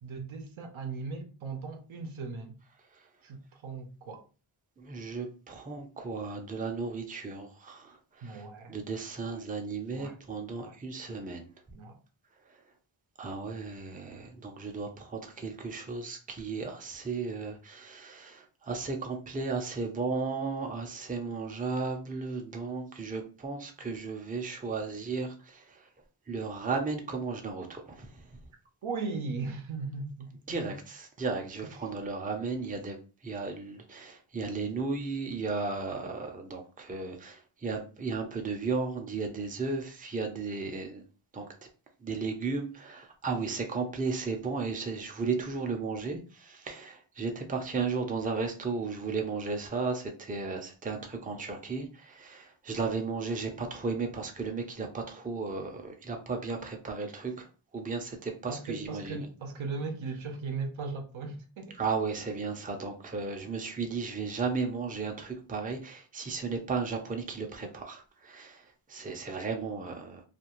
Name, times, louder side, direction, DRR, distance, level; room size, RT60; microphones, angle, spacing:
voice 1, 0.0-2.6 3.2-4.2 8.2-8.8 9.2-9.4 9.9-10.2 10.5-10.8 11.7-12.0 28.8-30.8 58.5-61.8, right 4 dB, 70° right, 0.7 m, -38 dB
voice 2, 4.8-8.4 8.7-11.5 12.5-12.6 13.2-25.9 26.3-28.2 30.5-33.0 33.2-41.0 41.3-41.5 42.0-57.5 57.7-59.3 61.8-70.2, right 4 dB, 15° right, 0.5 m, -35 dB
2.5 x 2.3 x 2.9 m
cardioid pair, 65°, 49 cm